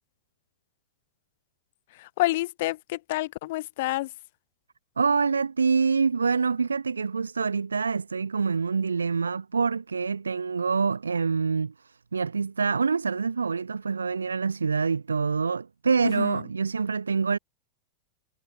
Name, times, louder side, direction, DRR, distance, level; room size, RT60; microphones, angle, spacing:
voice 1, 2.0-4.1 16.0-16.4, left 18 dB, 50° left, 0.5 m, -28 dB
voice 2, 5.0-17.4, right 5 dB, 75° right, 2.4 m, -26 dB
figure-of-eight pair, 90°, 0 cm